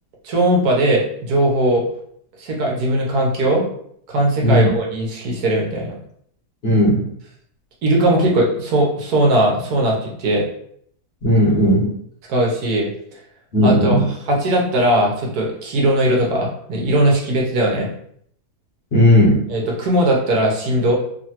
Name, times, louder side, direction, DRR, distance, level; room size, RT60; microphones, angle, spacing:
voice 1, 0.2-1.8 2.4-3.6 4.1-6.0 7.8-10.5 12.3-12.9 13.6-17.9 19.5-20.9, right 1 dB, 70° right, -2 dB, 1.3 m, -19 dB
voice 2, 6.6-7.0 11.2-11.9 13.5-14.0 18.9-19.4, equal, 45° left, -4 dB, 0.9 m, -15 dB
3.2 x 2.5 x 2.8 m, 0.66 s
omnidirectional pair, 1.7 m